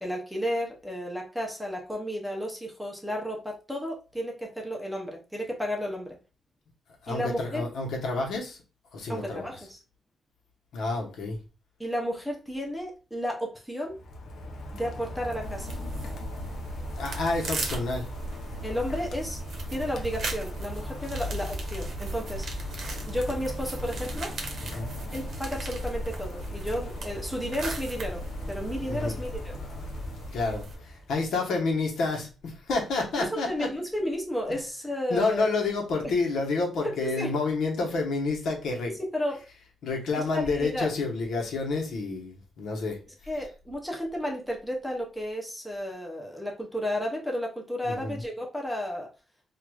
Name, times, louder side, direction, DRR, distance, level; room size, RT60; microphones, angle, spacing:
voice 1, 0.0-6.2 7.1-7.7 9.1-9.8 11.8-14.0 14.7-15.7 18.6-19.4 19.7-22.5 23.1-24.3 25.1-29.5 33.2-35.5 36.0-36.1 36.8-37.3 38.9-39.5 40.3-40.9 43.3-49.1, equal, ahead, 0.6 m, -32 dB
voice 2, 7.0-8.6 8.9-9.4 10.7-11.4 16.9-18.1 24.6-24.9 28.9-29.2 30.1-33.7 35.1-38.9 39.8-43.0 47.8-48.2, left 3 dB, 70° left, 1.0 m, -29 dB
Rain, 13.8-31.1, left 1 dB, 55° left, 0.6 m, -39 dB
sound 1, 15.4-30.8, right 1 dB, 55° right, 0.8 m, -37 dB
4.7 x 2.4 x 2.3 m
wide cardioid pair, 180°, 0 cm